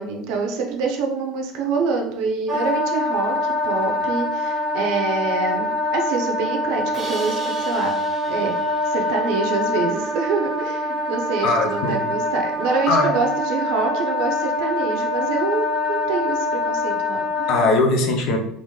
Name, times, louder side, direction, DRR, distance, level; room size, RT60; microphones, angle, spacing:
voice 1, 0.0-8.0 8.3-8.6 8.8-17.5, right 4 dB, 55° right, 3 dB, 0.6 m, -26 dB
Wind instrument woodwind instrument, 2.5-17.7, left 2 dB, 15° left, 1.5 m, -24 dB
Crash cymbal, 6.9-10.0, right 1 dB, 15° right, 0.6 m, -39 dB
voice 2, 11.4-12.0 12.9-13.1 17.5-18.4, left 2 dB, 45° left, 2 dB, 0.5 m, -19 dB
3.5 x 2.5 x 3.1 m, 0.75 s
cardioid pair, 175°, 0 cm